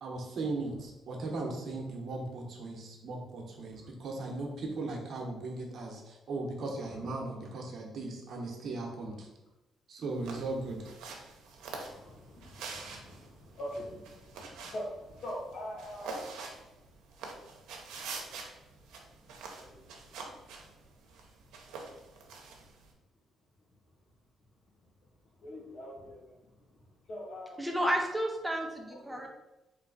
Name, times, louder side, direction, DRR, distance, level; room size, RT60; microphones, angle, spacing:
voice 1, 0.0-9.3 9.9-10.9, right 2 dB, 60° right, 1 dB, 1.0 m, -37 dB
sound 1, 10.1-22.9, right 4 dB, 85° right, 0.8 m, -46 dB
voice 2, 10.3-10.7 11.7-16.4 19.2-19.8 25.4-26.4 27.0-27.8 28.9-29.3, equal, 60° left, -2 dB, 1.4 m, -44 dB
voice 3, 27.6-29.3, equal, 10° right, 1 dB, 0.7 m, -31 dB
3.9 x 3.2 x 3.9 m, 0.99 s
cardioid pair, 90°, 0 cm